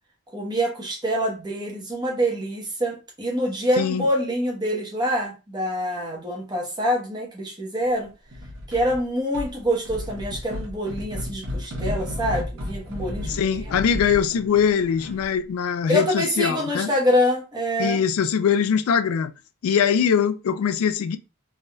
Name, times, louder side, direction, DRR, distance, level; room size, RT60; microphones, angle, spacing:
voice 1, 0.3-8.1 8.7-13.6 15.9-18.0, equal, 20° right, 0.9 m, -25 dB
voice 2, 3.8-4.1 13.2-16.9 17.8-19.3 19.6-21.2, left 7 dB, 90° left, 0.3 m, -22 dB
sound 1, 8.3-9.0 9.3-15.4, left 1 dB, 65° right, 0.9 m, -33 dB
3.4 x 2.6 x 2.2 m
head